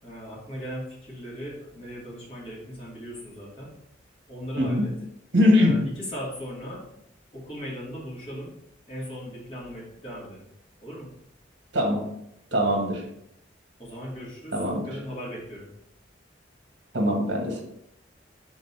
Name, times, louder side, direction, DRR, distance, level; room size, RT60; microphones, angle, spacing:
voice 1, 0.0-3.7 4.3-4.9 5.5-6.9 7.3-8.5 8.9-10.4 10.8-11.1 13.8-15.7, equal, 30° left, -7 dB, 2.6 m, -38 dB
voice 2, 5.3-5.8 11.7-12.0 12.5-13.0 14.5-14.8 16.9-17.6, left 1 dB, 70° right, 1 dB, 1.7 m, -22 dB
4.4 x 4.0 x 5.5 m, 0.76 s
head